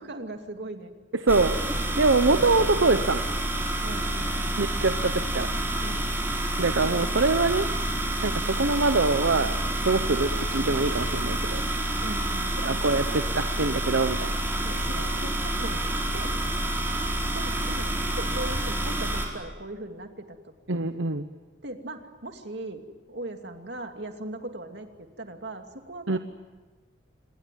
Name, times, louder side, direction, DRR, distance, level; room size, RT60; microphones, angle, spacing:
voice 1, 0.0-0.9 3.8-4.6 5.8-6.1 6.8-6.9 12.0-12.9 14.6-16.4 17.3-20.5 21.6-26.2, right 1 dB, 60° right, 5 dB, 2.6 m, -39 dB
voice 2, 1.1-1.6 2.0-3.2 4.6-5.5 6.6-7.7 8.2-9.6 9.8-11.6 12.6-14.4 20.7-21.3 26.1-26.2, right 3 dB, 80° right, 9 dB, 1.0 m, -24 dB
sound 1, 1.3-19.3, right 1 dB, 10° right, 4.3 m, -28 dB
27.0 x 21.5 x 9.4 m, 1.3 s
head